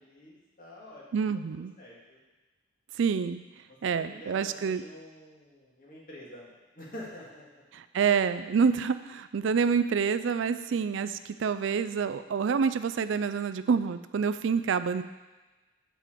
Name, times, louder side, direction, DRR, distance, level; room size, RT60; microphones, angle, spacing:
voice 1, 0.0-2.2 3.7-7.4, left 1 dB, 45° left, -5 dB, 2.2 m, -48 dB
voice 2, 1.1-1.7 3.0-3.4 3.8-4.8 7.7-15.0, right 6 dB, 75° right, 12 dB, 0.4 m, -27 dB
7.6 x 5.0 x 6.6 m, 1.2 s
head